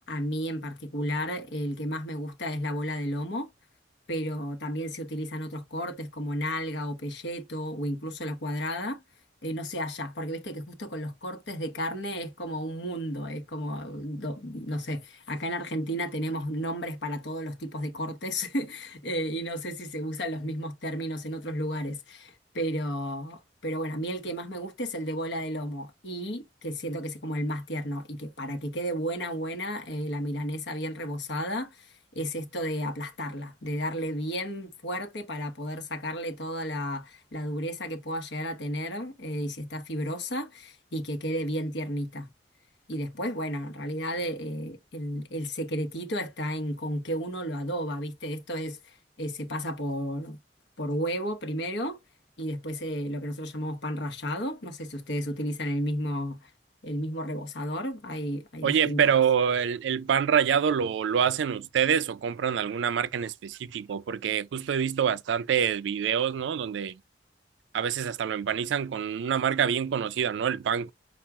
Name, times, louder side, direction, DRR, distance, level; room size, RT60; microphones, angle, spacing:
voice 1, 0.1-3.5 4.1-9.0 9.4-42.3 42.9-50.4 50.8-52.0 52.4-56.5 56.8-59.1, equal, 75° left, 1.0 m, -33 dB
voice 2, 58.6-67.0 67.7-70.9, right 8 dB, 80° right, 0.3 m, -26 dB
5.8 x 2.3 x 3.5 m
head